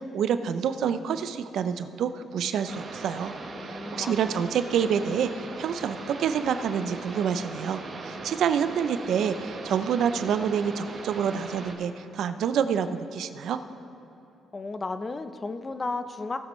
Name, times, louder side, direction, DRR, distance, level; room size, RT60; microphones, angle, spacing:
voice 1, 0.0-3.3 3.9-13.6, right 7 dB, 70° right, 10 dB, 0.5 m, -27 dB
sound 1, 2.7-11.7, right 3 dB, 50° right, 1.3 m, -39 dB
voice 2, 3.5-4.4 14.5-16.4, left 3 dB, 30° left, 10 dB, 0.6 m, -34 dB
18.0 x 7.6 x 3.1 m, 3.0 s
cardioid pair, 90°, 0 cm